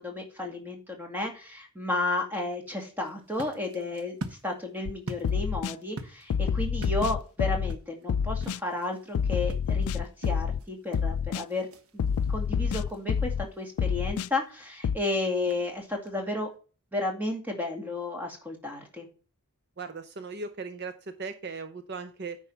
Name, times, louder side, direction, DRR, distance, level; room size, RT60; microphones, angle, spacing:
voice 1, 0.0-11.7 11.9-16.5 16.9-19.1, left 2 dB, 10° right, 2 dB, 2.1 m, -33 dB
sound 1, 3.0-16.6, right 2 dB, 80° right, 1.2 m, -47 dB
sound 2, 4.8-4.9 5.2-5.7 6.3-7.8 8.1-8.6 9.1-10.6 10.9-11.4 12.0-13.5 13.8-14.3 14.8-15.0, left 6 dB, 80° left, 0.3 m, -28 dB
voice 2, 19.8-22.4, right 4 dB, 50° right, 9 dB, 0.6 m, -38 dB
9.7 x 4.7 x 5.6 m, 0.36 s
head